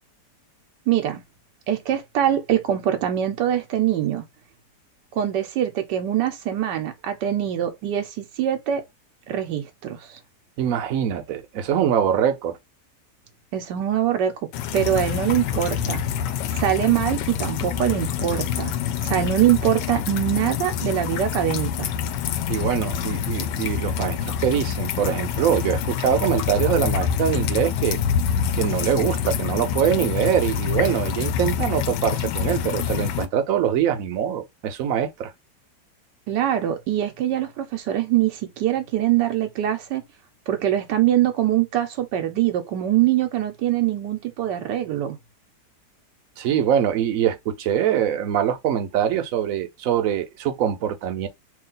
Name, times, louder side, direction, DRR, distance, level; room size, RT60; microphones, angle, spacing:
voice 1, 0.9-1.2 1.7-4.2 5.1-8.8 9.3-10.2 13.5-14.4 14.7-16.0 16.5-18.7 19.0-21.9 36.3-40.0 40.5-45.2, right 11 dB, 85° right, 1.3 m, -23 dB
voice 2, 10.6-12.6 22.5-28.0 28.5-35.3 46.4-51.3, right 9 dB, 65° right, 1.0 m, -23 dB
sound 1, 14.5-33.3, left 8 dB, 90° left, 1.2 m, -26 dB
3.1 x 2.8 x 3.8 m
omnidirectional pair, 1.8 m